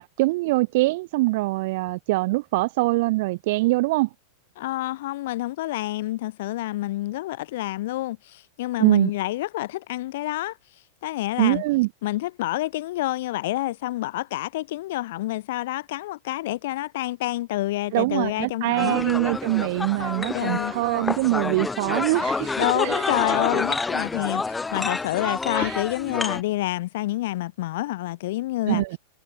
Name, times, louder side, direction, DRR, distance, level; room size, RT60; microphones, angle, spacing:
voice 1, 0.0-4.1 8.8-9.1 11.4-11.9 17.9-23.0 25.5-25.8 28.7-29.0, right 21 dB, 50° right, 4.6 m, -23 dB
voice 2, 4.6-10.6 11.0-11.6 12.0-19.0 20.3-20.7 22.6-28.8, left 16 dB, 55° left, 5.8 m, -28 dB
sound 1, 18.8-26.4, left 3 dB, 10° left, 2.0 m, -28 dB
figure-of-eight pair, 90°, 0 cm